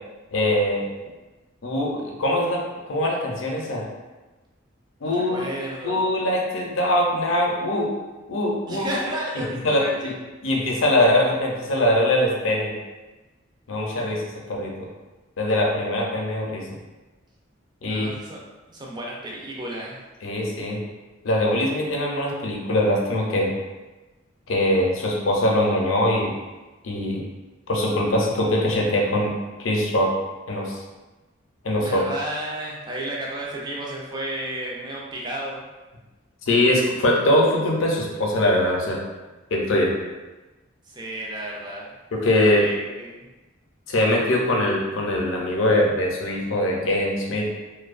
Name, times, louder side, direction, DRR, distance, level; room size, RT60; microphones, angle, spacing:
voice 1, 0.3-0.9 1.6-3.8 5.0-5.5 5.8-7.9 8.3-8.9 9.4-10.1 10.4-12.7 13.7-14.7 15.4-16.7 17.8-18.1 20.2-20.8 21.2-23.5 24.5-26.3 26.8-27.2 27.7-29.3 29.6-30.1 30.5-30.8 31.6-32.0 36.4-39.0 39.5-39.9 42.1-42.6 43.9-47.5, left 1 dB, 80° left, -1 dB, 0.5 m, -22 dB
voice 2, 5.0-6.0 8.6-10.1 13.9-14.2 17.8-20.0 31.8-35.7 40.8-41.9 42.3-43.3, right 1 dB, 20° right, -3 dB, 0.4 m, -33 dB
2.6 x 2.1 x 2.4 m, 1.2 s
head